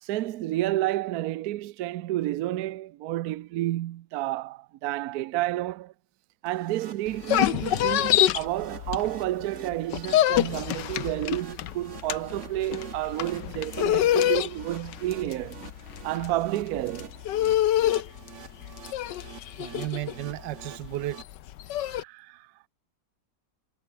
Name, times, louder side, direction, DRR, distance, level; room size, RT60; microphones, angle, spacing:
voice 1, 0.0-5.9 6.4-15.7 16.0-17.1 21.7-22.5, right 15 dB, 70° right, 1.0 m, -30 dB
sound 1, 6.5-21.2, right 6 dB, 45° right, 1.6 m, -47 dB
sound 2, 7.1-9.4 9.7-22.0, left 12 dB, 85° left, 1.5 m, -26 dB
voice 2, 19.6-21.2, right 14 dB, 90° right, 1.4 m, -33 dB
omnidirectional pair, 1.9 m